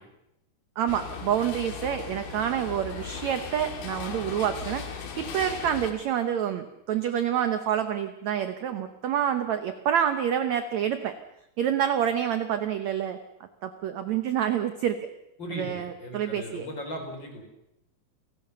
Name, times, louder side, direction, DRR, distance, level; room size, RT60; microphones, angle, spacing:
voice 1, 0.8-11.1 11.6-13.2 13.6-15.0 15.5-16.7, right 9 dB, 70° right, 10 dB, 1.7 m, -27 dB
sound 1, 0.9-5.9, left 6 dB, 70° left, 4.2 m, -37 dB
voice 2, 15.4-17.4, equal, 30° left, 4 dB, 4.8 m, -37 dB
29.5 x 17.5 x 6.9 m, 0.85 s
omnidirectional pair, 4.5 m